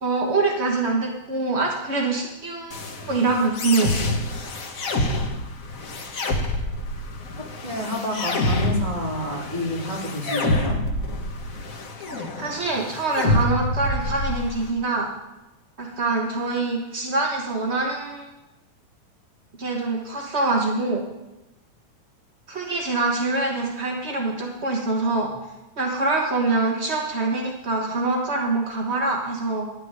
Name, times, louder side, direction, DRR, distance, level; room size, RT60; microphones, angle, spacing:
voice 1, 0.0-4.0 12.2-15.1 15.8-18.3 19.6-21.0 22.5-25.3 25.8-29.6, right 3 dB, 50° right, 0 dB, 0.7 m, -24 dB
sound 1, 2.7-14.7, left 2 dB, 55° left, 0.9 m, -27 dB
voice 2, 7.6-10.8, left 1 dB, 15° right, -2 dB, 2.8 m, -29 dB
13.0 x 6.7 x 9.7 m, 1.0 s
omnidirectional pair, 3.7 m